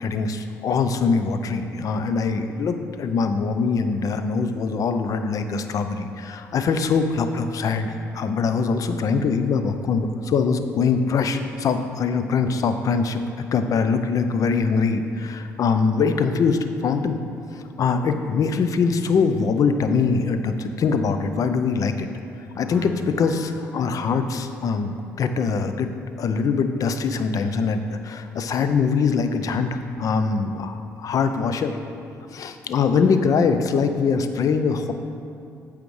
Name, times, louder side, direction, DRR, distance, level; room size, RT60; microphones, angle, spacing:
voice 1, 0.0-13.2 13.5-17.2 17.5-22.1 22.6-24.9 25.2-25.9 26.2-31.8 32.3-34.9, left 5 dB, 50° left, 8 dB, 0.5 m, -23 dB
sound 1, 22.5-25.4, equal, 20° left, 1.0 m, -41 dB
8.2 x 4.9 x 3.1 m, 2.6 s
hypercardioid pair, 55°, 7 cm